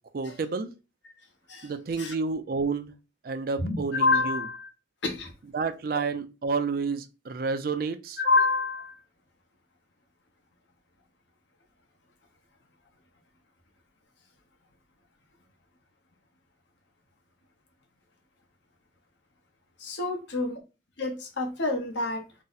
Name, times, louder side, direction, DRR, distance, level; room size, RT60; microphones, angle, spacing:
voice 1, 0.1-0.7 1.6-2.9 3.2-4.4 5.5-8.2, right 4 dB, 50° right, 0.3 m, -30 dB
voice 2, 3.6-4.7 5.0-5.3 8.2-9.0 19.8-20.6 21.0-22.2, left 3 dB, 70° left, 0.8 m, -27 dB
2.7 x 2.1 x 3.9 m
head